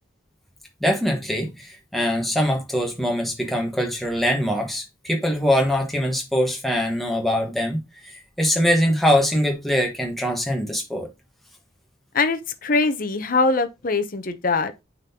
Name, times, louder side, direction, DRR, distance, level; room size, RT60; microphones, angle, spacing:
voice 1, 0.8-7.8 8.1-11.1, equal, ahead, 1.4 m, -23 dB
voice 2, 12.1-14.7, left 3 dB, 45° left, 0.7 m, -22 dB
9.4 x 3.8 x 2.8 m
head